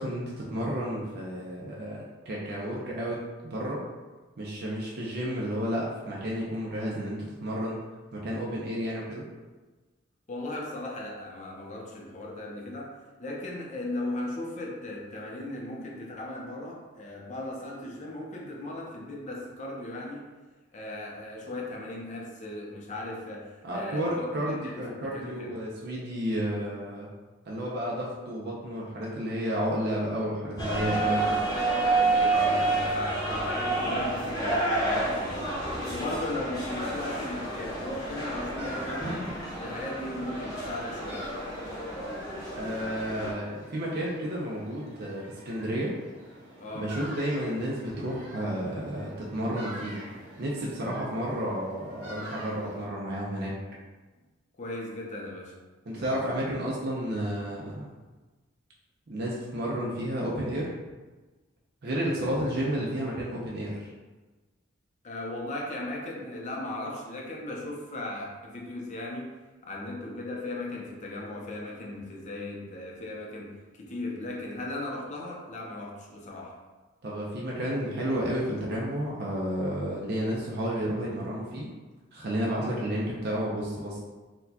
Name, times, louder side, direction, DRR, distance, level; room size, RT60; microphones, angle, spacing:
voice 1, 0.0-3.2 3.4-3.8 4.4-7.8 8.1-9.2 23.6-27.1 27.5-31.4 42.5-45.9 46.7-50.0 50.4-53.5 55.9-57.9 59.1-60.7 61.8-63.9 77.0-81.7 82.1-84.0, equal, 55° right, -4 dB, 0.5 m, -31 dB
voice 2, 10.3-20.2 20.7-25.5 32.1-35.6 35.9-39.3 39.6-41.3 43.2-43.3 46.6-47.0 50.8-51.1 54.6-55.6 55.9-56.2 62.6-62.9 65.0-69.3 69.6-76.6, left 1 dB, 40° left, -2 dB, 0.6 m, -37 dB
sound 1, 30.6-43.3, right 2 dB, 20° left, 0.9 m, -29 dB
sound 2, 32.3-40.0, equal, 35° right, 0.9 m, -48 dB
sound 3, 37.5-52.9, equal, 85° right, 1.4 m, -46 dB
4.3 x 2.2 x 2.7 m, 1.3 s
head